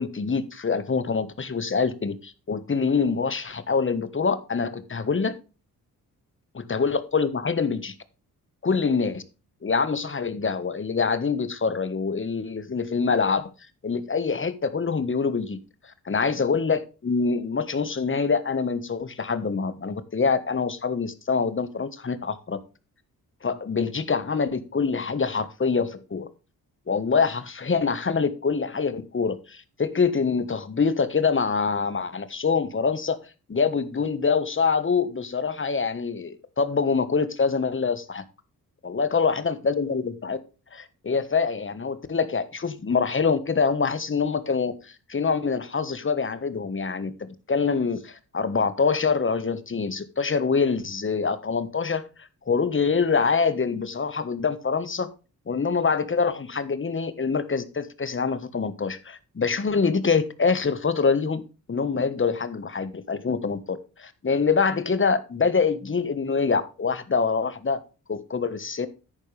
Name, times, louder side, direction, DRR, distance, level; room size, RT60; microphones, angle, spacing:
voice 1, 0.0-5.3 6.5-7.9 8.6-9.2 9.6-13.4 13.8-22.6 23.4-26.3 26.9-33.2 33.5-38.2 38.8-40.4 40.7-55.1 55.5-61.4 61.7-67.8 68.1-68.9, left 5 dB, 35° left, 13 dB, 1.3 m, -25 dB
10.5 x 9.0 x 3.3 m, 0.32 s
cardioid pair, 90°, 36 cm